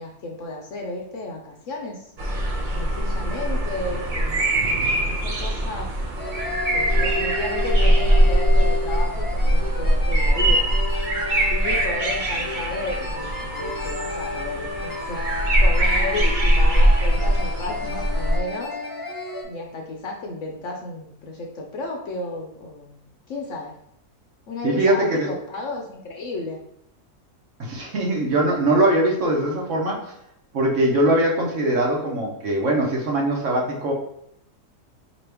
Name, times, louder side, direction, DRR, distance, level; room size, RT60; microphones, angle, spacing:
voice 1, 0.0-2.1 2.8-6.0 6.7-10.6 11.5-18.7 19.4-23.7 24.5-26.6, left 2 dB, 60° left, 1 dB, 0.9 m, -33 dB
sound 1, 2.2-18.4, right 1 dB, 85° right, 0.4 m, -21 dB
sound 2, 6.2-19.4, left 2 dB, 25° left, 0.4 m, -32 dB
voice 2, 24.6-25.3 27.6-30.1 30.5-33.9, right 1 dB, 55° right, -1 dB, 1.0 m, -21 dB
4.5 x 3.0 x 3.3 m, 0.75 s
omnidirectional pair, 1.7 m